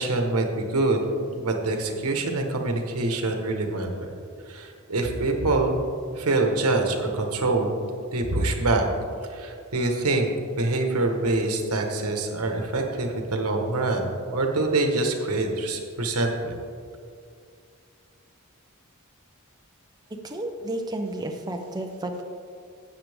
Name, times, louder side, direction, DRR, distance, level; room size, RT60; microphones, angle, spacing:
voice 1, 0.0-3.9 4.5-5.9 6.2-7.8 8.1-8.8 9.3-16.5, right 2 dB, 85° right, 3 dB, 1.3 m, -25 dB
voice 2, 20.2-22.2, right 1 dB, 20° right, 3 dB, 0.6 m, -32 dB
13.0 x 8.4 x 3.6 m, 2.3 s
head